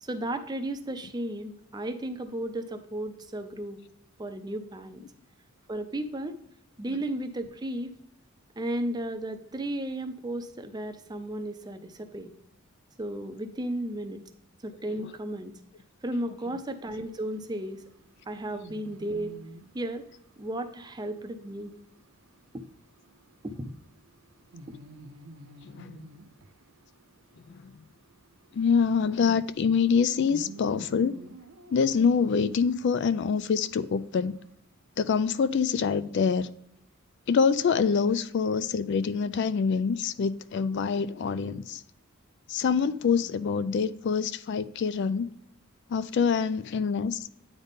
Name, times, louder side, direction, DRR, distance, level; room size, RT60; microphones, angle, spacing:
voice 1, 0.0-3.8 4.2-5.0 5.7-6.4 6.8-8.0 8.6-12.3 13.0-14.2 14.6-15.5 16.0-17.8 18.3-19.4 19.7-20.1 20.4-21.8 22.5-22.6 23.4-23.7 24.7-24.8, right 1 dB, 20° right, 0.5 m, -34 dB
sound 1, 17.0-34.5, right 2 dB, 65° right, 0.7 m, -52 dB
voice 2, 25.7-26.0 27.5-27.7 28.5-31.2 31.7-34.3 35.0-36.5 37.3-41.8 42.5-45.3 45.9-47.3, left 6 dB, 55° left, 0.3 m, -25 dB
9.3 x 4.0 x 3.5 m
head